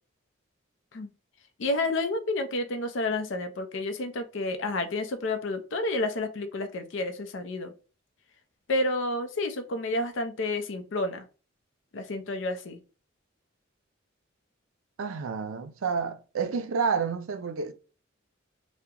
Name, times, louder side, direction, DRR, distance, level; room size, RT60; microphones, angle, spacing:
voice 1, 1.6-7.7 8.7-11.2 11.9-12.8, left 2 dB, 65° left, 0.5 m, -30 dB
voice 2, 15.0-17.7, right 5 dB, 90° right, 0.4 m, -29 dB
2.8 x 2.1 x 3.6 m
head